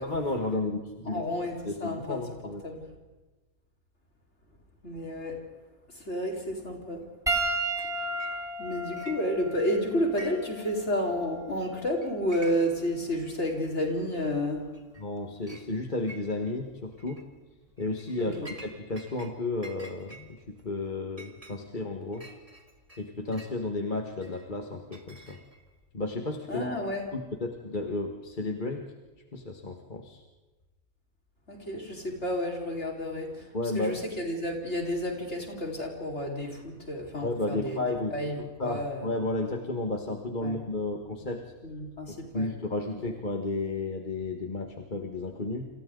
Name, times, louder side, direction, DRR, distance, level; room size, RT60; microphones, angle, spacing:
voice 1, 0.0-1.2 1.6-2.6 15.0-17.2 17.8-22.3 23.0-25.4 25.9-26.8 27.1-28.8 29.3-30.2 33.5-33.9 37.2-41.5 42.1-45.7, left 2 dB, 35° left, 2 dB, 1.8 m, -33 dB
voice 2, 1.1-2.9 4.8-5.5 5.9-7.1 7.8-8.0 8.6-14.7 18.2-18.5 26.5-27.1 31.5-39.1 40.4-40.6 41.6-42.5 42.8-42.9, equal, 50° left, 0 dB, 4.9 m, -31 dB
Piano, 7.3-11.9 12.9-13.0 15.0-15.1, right 2 dB, ahead, 2.3 m, -34 dB
Chink clink, 7.3-7.5 7.8-8.7 9.0-9.7 10.0-10.6 10.9-11.0 11.6-11.7 12.0-12.8 13.3-13.4 14.2-14.3 14.7-15.1 15.5-15.7 16.1-16.6 17.0-17.2 17.8-19.3 19.6-23.6 24.2-25.7, right 2 dB, 25° right, 2.4 m, -48 dB
29.5 x 27.0 x 3.9 m, 1.2 s
omnidirectional pair, 1.5 m